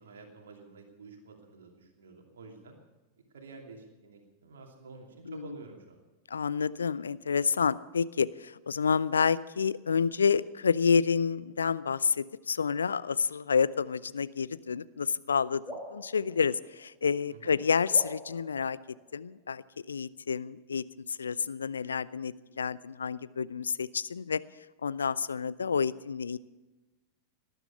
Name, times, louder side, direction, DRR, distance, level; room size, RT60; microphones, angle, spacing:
voice 1, 0.0-2.7 3.3-6.0 17.3-17.5, right 3 dB, 65° right, 2 dB, 2.6 m, -49 dB
voice 2, 6.3-18.8 19.1-19.6 19.9-24.4 24.8-26.4, left 6 dB, 70° left, 19 dB, 0.4 m, -29 dB
sound 1, 15.7-17.3 17.9-19.6, equal, 5° left, 6.0 m, -46 dB
18.5 x 11.0 x 6.8 m, 1.1 s
figure-of-eight pair, 90°, 0 cm